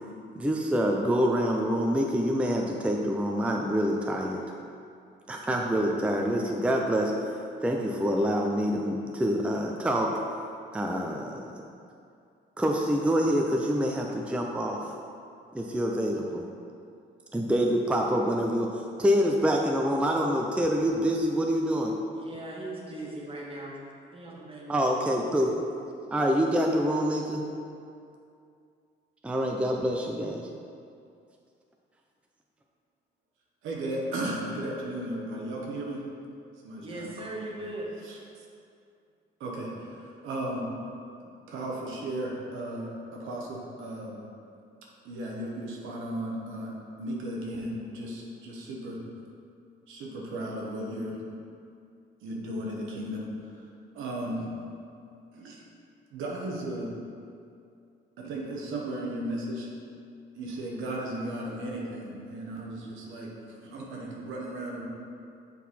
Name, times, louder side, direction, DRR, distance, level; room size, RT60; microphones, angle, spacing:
voice 1, 0.3-4.4 5.3-7.1 7.6-10.1 10.7-11.4 12.6-14.9 15.5-16.4 17.3-18.7 19.0-21.9 24.7-25.5 26.1-27.4 29.2-30.4, equal, 5° right, 1 dB, 0.5 m, -26 dB
voice 2, 22.1-23.8 24.1-24.9 36.8-37.9, right 1 dB, 30° right, -4 dB, 1.5 m, -39 dB
voice 3, 33.6-36.0 36.6-37.5 38.1-38.2 39.4-40.7 41.5-44.2 45.0-49.0 49.9-51.2 52.2-53.3 53.9-54.5 55.3-55.6 56.1-56.9 58.2-59.7 60.3-64.9, right 1 dB, 85° right, -2 dB, 1.1 m, -35 dB
7.2 x 4.0 x 4.2 m, 2.5 s
cardioid pair, 90°, 20 cm